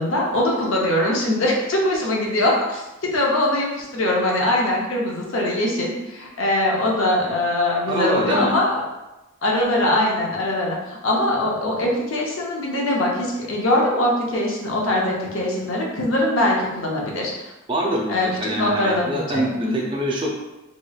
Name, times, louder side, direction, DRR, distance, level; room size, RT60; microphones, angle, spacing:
voice 1, 0.0-8.8 9.4-17.5 18.1-19.9, left 1 dB, 70° left, -2 dB, 0.7 m, -22 dB
voice 2, 7.9-8.5 17.7-20.4, right 1 dB, 25° right, -1 dB, 0.4 m, -25 dB
3.0 x 3.0 x 2.3 m, 1.0 s
head